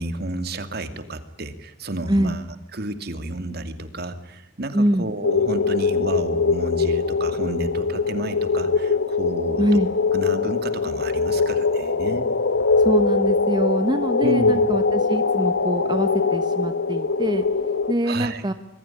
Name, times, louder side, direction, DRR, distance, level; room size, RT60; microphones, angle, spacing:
voice 1, 0.0-2.5 2.7-9.7 10.1-12.3 14.2-14.7 18.0-18.4, right 2 dB, 55° right, 9 dB, 2.6 m, -31 dB
voice 2, 4.7-5.1 9.6-9.9 12.8-17.5 17.9-18.5, right 1 dB, 25° right, 9 dB, 1.1 m, -24 dB
sound 1, 5.2-17.9, left 4 dB, 85° left, 1.3 m, -22 dB
25.0 x 22.5 x 10.0 m, 0.75 s
head